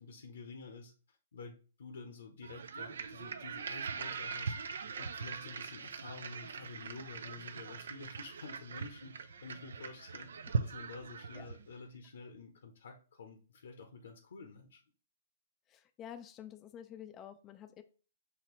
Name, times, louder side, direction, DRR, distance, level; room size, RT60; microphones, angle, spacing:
voice 1, 0.0-4.5 5.0-14.8, left 4 dB, 75° left, 4 dB, 0.7 m, -50 dB
sound 1, 2.4-11.7, right 5 dB, 75° right, 0.4 m, -41 dB
voice 2, 15.7-17.8, left 9 dB, 25° left, 8 dB, 0.4 m, -49 dB
5.6 x 2.9 x 3.0 m, 0.37 s
hypercardioid pair, 130°, 0 cm